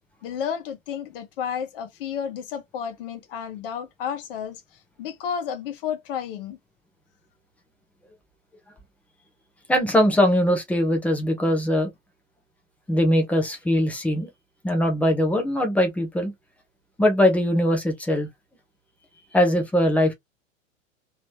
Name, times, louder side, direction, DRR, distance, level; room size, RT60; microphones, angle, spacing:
voice 1, 0.2-4.6 5.0-6.6, left 8 dB, 45° left, 1.0 m, -31 dB
voice 2, 9.7-11.9 12.9-14.3 14.6-16.3 17.0-18.3 19.3-20.1, left 1 dB, 5° left, 0.5 m, -21 dB
3.0 x 3.0 x 3.2 m
figure-of-eight pair, 100°, 40 cm